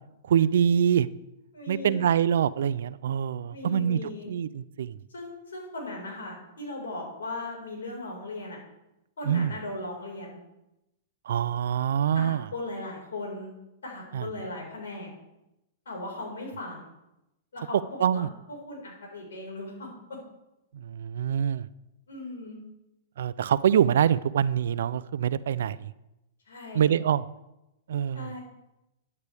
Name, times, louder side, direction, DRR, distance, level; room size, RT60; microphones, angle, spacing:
voice 1, 0.2-1.1 1.7-4.0 4.3-5.0 9.2-9.5 11.3-12.5 14.1-14.3 18.0-18.3 20.7-21.7 23.2-25.9 26.7-27.2 27.9-28.3, right 9 dB, 75° right, 18 dB, 0.4 m, -25 dB
voice 2, 1.5-2.0 3.5-4.3 5.1-8.6 9.2-10.4 12.1-13.5 13.8-15.1 15.8-16.9 17.5-19.9 22.1-22.6 26.5-26.9 28.1-28.4, left 2 dB, 90° left, -1 dB, 4.8 m, -38 dB
13.5 x 9.5 x 3.5 m, 0.91 s
hypercardioid pair, 125°, 0 cm